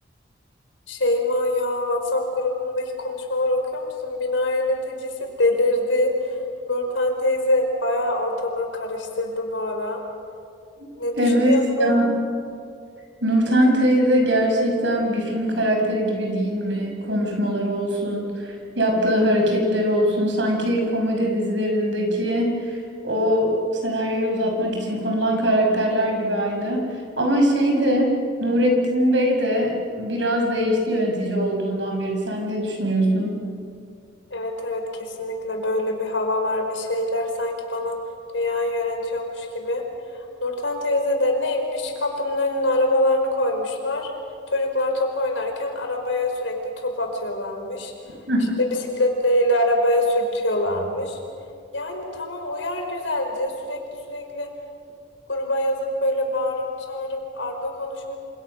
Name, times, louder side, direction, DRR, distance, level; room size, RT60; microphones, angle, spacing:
voice 1, 0.9-6.4 6.6-10.0 11.0-11.9 34.3-38.0 38.3-39.8 40.1-44.1 44.5-47.9 49.0-51.2 51.7-54.5 55.3-58.2, left 1 dB, 90° left, 3 dB, 5.0 m, -24 dB
voice 2, 11.2-12.1 13.2-22.8 23.0-23.5 23.8-28.1 28.4-33.4 48.3-48.5, equal, 70° right, 2 dB, 5.8 m, -22 dB
27.5 x 27.5 x 6.6 m, 2.4 s
head